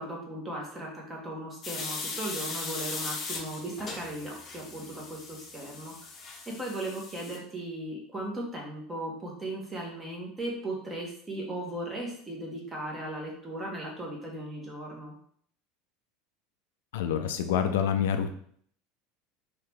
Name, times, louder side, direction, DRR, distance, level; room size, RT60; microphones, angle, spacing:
voice 1, 0.0-6.1 6.6-15.1, right 1 dB, 15° right, -2 dB, 1.0 m, -37 dB
sound 1, 1.6-7.4, left 4 dB, 30° left, 0.7 m, -39 dB
voice 2, 16.9-18.3, left 8 dB, 90° left, 7 dB, 0.4 m, -27 dB
2.9 x 2.9 x 3.4 m, 0.62 s
supercardioid pair, 125°, 0 cm